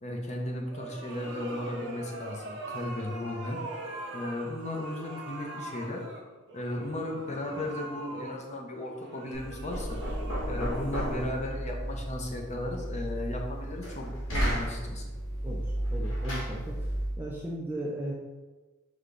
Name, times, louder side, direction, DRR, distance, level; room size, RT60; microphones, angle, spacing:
voice 1, 0.0-3.6 4.1-6.0 6.5-10.0 10.4-15.0, left 1 dB, 30° left, 0 dB, 0.6 m, -35 dB
sound 1, 0.6-11.6, right 2 dB, 55° right, 0.6 m, -42 dB
voice 2, 7.3-7.6 15.4-16.8 17.2-18.1, right 1 dB, 10° right, -4 dB, 0.4 m, -37 dB
Knock, 9.3-17.2, equal, 65° left, 1.5 m, -33 dB
5.0 x 2.3 x 3.8 m, 1.2 s
head